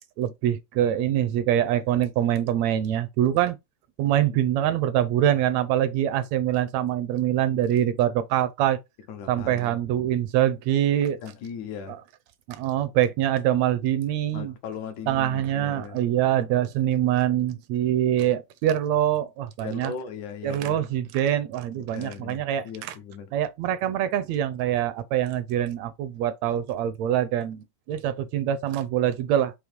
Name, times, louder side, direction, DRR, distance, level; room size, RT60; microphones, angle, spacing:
voice 1, 0.2-3.6 4.0-8.8 9.3-11.2 11.9-12.0 12.5-14.5 15.1-19.9 20.4-23.0 23.3-29.5, right 11 dB, 80° right, 1.6 m, -24 dB
voice 2, 9.1-9.8 11.2-12.0 14.3-16.0 19.6-20.8 21.9-23.3, left 6 dB, 85° left, 2.5 m, -38 dB
6.3 x 2.9 x 5.1 m
omnidirectional pair, 3.4 m